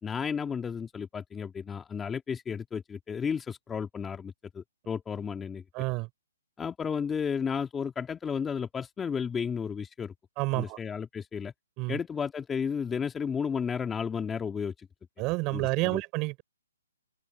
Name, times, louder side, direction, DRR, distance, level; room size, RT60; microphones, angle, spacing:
voice 1, 0.0-5.6 6.6-10.1 10.5-11.5 11.9-14.9 15.5-16.0, left 6 dB, 10° left, 2.1 m, -33 dB
voice 2, 5.7-6.1 10.4-10.8 11.8-12.0 15.2-16.4, right 24 dB, 25° right, 4.7 m, -29 dB
open air
hypercardioid pair, 150°, 0 cm